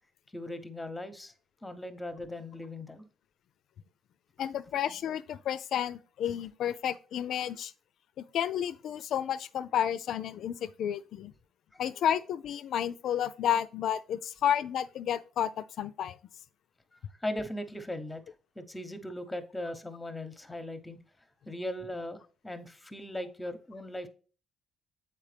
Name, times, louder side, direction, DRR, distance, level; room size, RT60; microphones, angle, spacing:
voice 1, 0.3-1.3 1.6-3.1 11.7-11.8 16.9-21.0 21.5-24.1, left 1 dB, 10° left, 0.9 m, -39 dB
voice 2, 4.4-7.7 8.2-11.3 11.8-16.2, left 9 dB, 75° left, 0.4 m, -31 dB
7.3 x 4.4 x 3.3 m
cardioid pair, 90°, 0 cm